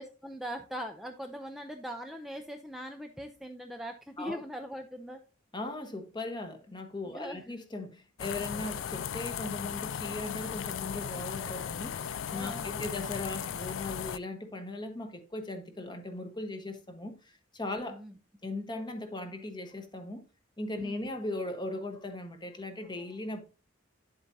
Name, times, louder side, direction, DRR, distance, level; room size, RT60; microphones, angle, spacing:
voice 1, 0.0-5.2 7.1-7.4 12.3-12.9 17.8-18.1 20.8-21.1, equal, ahead, 0.5 m, -41 dB
voice 2, 5.5-18.0 18.4-20.2 20.6-23.4, left 2 dB, 20° left, 1.2 m, -38 dB
sound 1, 8.2-14.2, left 8 dB, 75° left, 0.4 m, -36 dB
10.0 x 7.8 x 2.7 m
head